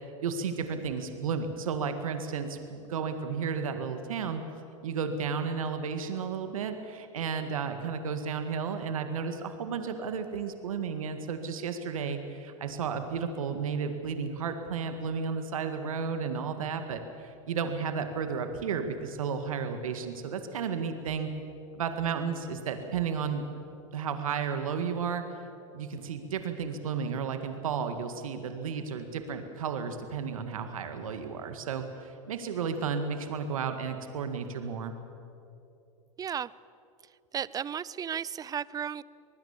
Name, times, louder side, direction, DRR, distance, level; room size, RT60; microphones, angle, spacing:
voice 1, 0.2-4.4 4.8-21.3 21.7-23.5 23.9-25.2 25.7-34.9, right 6 dB, 85° right, 7 dB, 1.9 m, -33 dB
voice 2, 36.2-36.5 37.3-39.0, right 8 dB, 20° right, 21 dB, 0.6 m, -34 dB
25.0 x 20.0 x 7.3 m, 2.7 s
hypercardioid pair, 100°, 17 cm